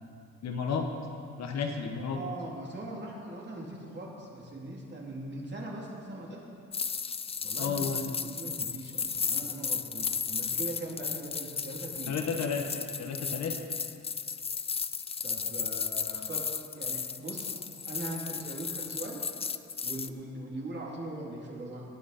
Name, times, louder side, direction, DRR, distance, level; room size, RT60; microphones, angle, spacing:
voice 1, 0.4-0.9 1.4-2.2 7.6-8.0 12.1-12.7 13.0-13.6, left 5 dB, 60° left, 3 dB, 1.4 m, -32 dB
voice 2, 2.0-6.6 7.4-12.2 15.2-19.2 19.8-21.9, right 1 dB, 35° right, -3 dB, 3.1 m, -41 dB
sound 1, 6.7-20.1, left 6 dB, 20° left, 0.4 m, -34 dB
18.5 x 9.4 x 4.3 m, 2.4 s
cardioid pair, 90°, 30 cm